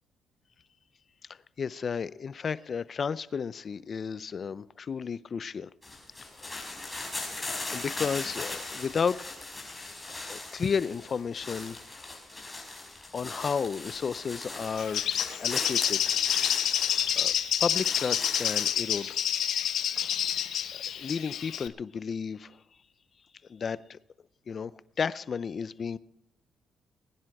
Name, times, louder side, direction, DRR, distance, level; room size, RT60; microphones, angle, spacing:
voice 1, 1.6-5.7 6.4-6.6 7.7-9.2 10.3-12.2 13.1-15.1 15.4-16.0 16.8-17.3 17.6-19.2 21.0-22.6 23.5-24.0 24.5-24.7 25.0-26.0, left 6 dB, 45° left, 0.5 m, -32 dB
sound 1, 5.8-18.7, left 2 dB, 15° left, 5.6 m, -39 dB
Bird, 14.8-21.7, left 10 dB, 75° left, 0.8 m, -28 dB
21.0 x 10.0 x 4.8 m
cardioid pair, 90°, 0 cm